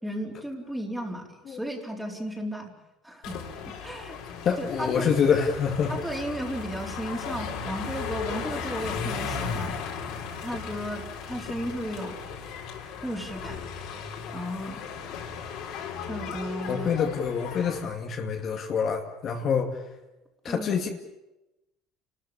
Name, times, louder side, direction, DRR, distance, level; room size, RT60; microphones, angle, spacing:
voice 1, 0.0-2.7 3.0-4.2 4.6-5.1 5.9-9.8 10.4-12.2 13.0-13.6 14.3-14.8 16.1-16.9 20.4-20.7, equal, 5° right, 1 dB, 4.1 m, -34 dB
sound 1, 3.2-17.8, left 6 dB, 65° left, 4.1 m, -36 dB
voice 2, 4.4-5.9 16.7-19.8 20.4-20.9, left 6 dB, 45° left, 3 dB, 2.4 m, -26 dB
29.0 x 13.5 x 8.8 m, 0.97 s
cardioid pair, 115°, 0 cm